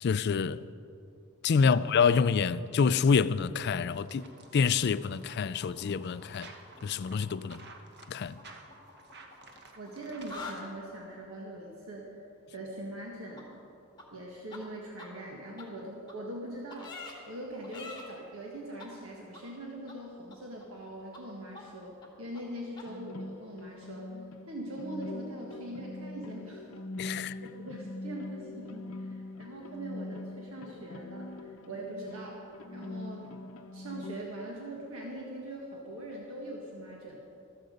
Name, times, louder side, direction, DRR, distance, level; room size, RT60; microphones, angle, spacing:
voice 1, 0.0-0.7 1.4-4.3 4.5-6.5 6.8-7.6 8.1-8.4 27.0-27.4, left 5 dB, 50° left, 0.3 m, -27 dB
sound 1, 3.9-10.6, right 3 dB, 50° right, 1.2 m, -53 dB
sound 2, 5.3-6.8 7.1-7.3 8.4-9.9 10.2-10.6 13.4-13.5 14.0-14.1 14.5-14.6 15.0-15.1 15.6-15.7 16.1-16.2 16.7-17.1 17.6-18.0 18.8-18.9 19.3-19.4 19.9-20.0 20.3-20.9 21.1-21.2 21.5-21.6 22.0-22.1 22.3-22.4 22.7-22.8, left 4 dB, 20° left, 1.9 m, -45 dB
voice 2, 9.8-12.2 12.5-13.6 14.1-17.0 17.3-24.1 24.5-26.6 27.1-32.4 32.7-33.3 33.7-37.2, right 1 dB, 65° right, 1.6 m, -42 dB
sound 3, 22.9-34.3, left 2 dB, 70° left, 0.7 m, -43 dB
14.5 x 13.0 x 5.2 m
head